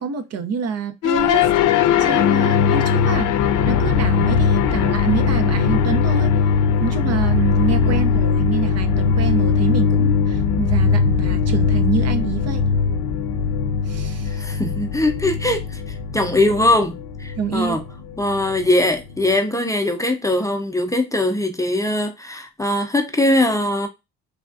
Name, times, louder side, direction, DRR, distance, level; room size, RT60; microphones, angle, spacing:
voice 1, 0.0-1.5 2.0-3.3 3.7-6.3 6.8-12.6 13.9-14.4 17.4-17.8, right 5 dB, 55° right, 0.6 m, -26 dB
sound 1, 1.0-19.3, left 6 dB, 85° left, 0.5 m, -19 dB
voice 2, 7.8-8.2 14.3-17.8 18.2-23.9, left 1 dB, 10° left, 0.5 m, -21 dB
3.4 x 2.3 x 2.4 m
cardioid pair, 90°, 30 cm